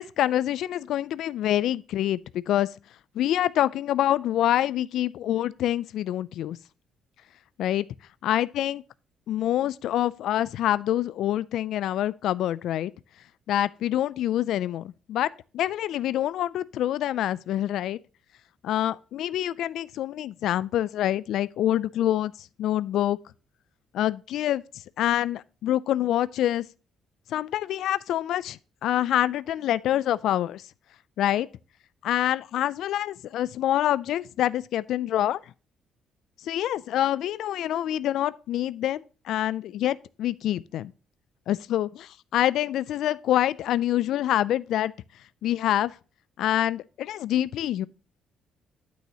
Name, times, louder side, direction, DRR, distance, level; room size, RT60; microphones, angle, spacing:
voice 1, 0.0-2.2 2.5-2.7 3.2-6.6 7.6-7.9 8.2-8.8 9.3-12.9 13.5-18.0 18.6-23.2 23.9-24.6 25.0-26.6 27.3-30.6 31.2-31.5 32.0-35.4 36.4-40.9 41.5-44.9 45.4-45.9 46.4-47.9, left 12 dB, 65° left, 0.3 m, -26 dB
9.2 x 8.2 x 2.9 m
cardioid pair, 170°, 0 cm